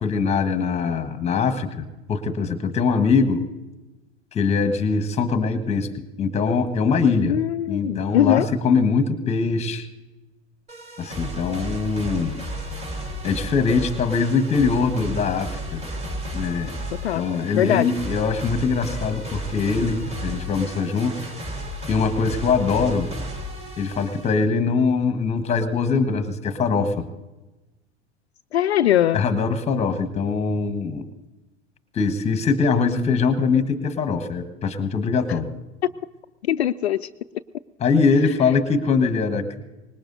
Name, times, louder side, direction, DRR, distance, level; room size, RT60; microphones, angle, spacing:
voice 1, 0.0-3.4 4.3-5.9 6.2-7.4 7.7-9.9 11.0-12.3 13.2-15.9 16.3-16.7 17.1-21.2 21.9-23.1 23.8-27.0 29.1-31.1 31.9-35.5 37.8-39.6, left 5 dB, 20° left, 9 dB, 1.3 m, -22 dB
voice 2, 7.3-8.5 17.0-17.3 17.5-17.9 28.5-29.2 35.8-35.9 36.5-37.1, left 11 dB, 65° left, 11 dB, 0.5 m, -21 dB
sound 1, 10.7-24.4, equal, 20° right, 3.7 m, -33 dB
24.5 x 20.5 x 2.7 m, 1.1 s
figure-of-eight pair, 85°, 35 cm